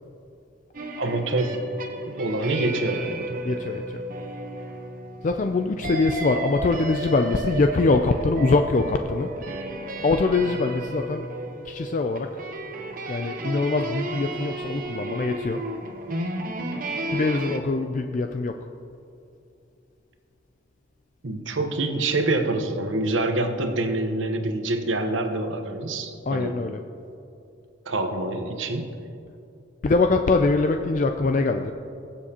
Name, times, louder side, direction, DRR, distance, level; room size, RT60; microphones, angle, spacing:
sound 1, 0.7-17.6, right 1 dB, 45° right, 0.9 m, -33 dB
voice 1, 1.0-1.6 2.0-3.4 21.2-26.6 27.9-28.9, right 2 dB, 80° right, 5 dB, 1.0 m, -26 dB
voice 2, 3.4-4.0 5.2-9.3 10.0-11.3 11.7-12.3 13.1-15.6 17.1-18.6 26.3-26.8 29.8-31.7, left 3 dB, 40° left, 6 dB, 0.3 m, -23 dB
21.5 x 7.3 x 2.9 m, 2.6 s
head